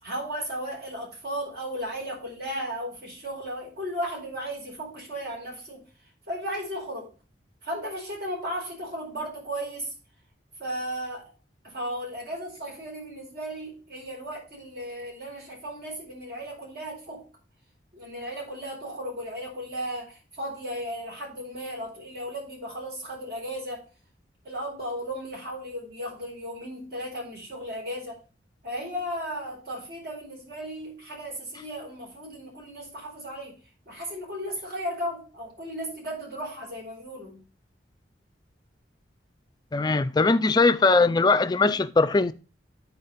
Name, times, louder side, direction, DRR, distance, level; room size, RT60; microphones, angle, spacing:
voice 1, 0.0-5.8 6.3-7.1 7.6-9.9 10.6-11.3 11.6-17.2 17.9-23.9 24.4-28.2 28.6-33.6 33.9-37.4, equal, 55° right, 4.6 m, -35 dB
voice 2, 39.7-42.3, left 3 dB, 20° left, 0.4 m, -20 dB
9.4 x 4.5 x 5.6 m
head